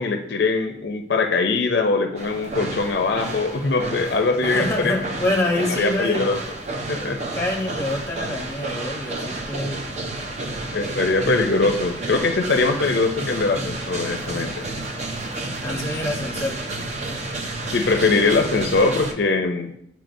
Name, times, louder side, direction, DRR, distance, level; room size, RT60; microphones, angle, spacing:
voice 1, 0.0-5.0 5.8-6.4 6.9-7.2 10.7-14.6 17.7-19.7, left 3 dB, 60° left, 5 dB, 0.5 m, -22 dB
sound 1, 2.2-19.1, right 2 dB, 40° right, 0.6 m, -31 dB
voice 2, 4.4-6.3 7.3-9.8 15.6-16.6, left 1 dB, 15° left, 1 dB, 1.0 m, -26 dB
9.0 x 4.6 x 2.6 m, 0.76 s
head